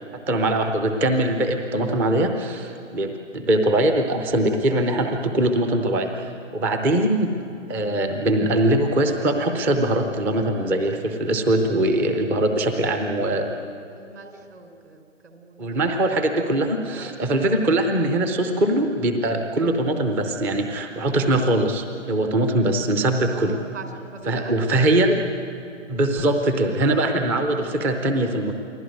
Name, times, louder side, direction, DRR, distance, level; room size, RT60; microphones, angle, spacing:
voice 1, 0.3-7.3 7.7-13.5 15.6-23.6 24.3-25.2 25.9-28.5, right 1 dB, 5° right, 6 dB, 0.5 m, -22 dB
voice 2, 13.9-16.3 16.9-17.1 23.3-25.0, right 3 dB, 65° right, 5 dB, 4.6 m, -42 dB
28.5 x 20.0 x 9.2 m, 2.5 s
figure-of-eight pair, 140°, 39 cm